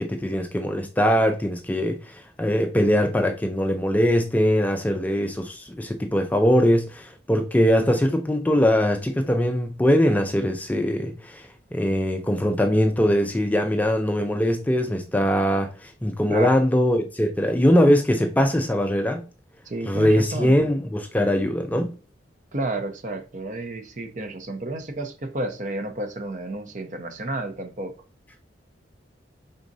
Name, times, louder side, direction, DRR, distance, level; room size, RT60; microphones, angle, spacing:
voice 1, 0.0-19.3 19.9-22.0, equal, 10° left, 0.3 m, -21 dB
voice 2, 19.7-20.5 22.5-28.0, right 2 dB, 45° right, 0.7 m, -31 dB
4.9 x 3.8 x 2.6 m
head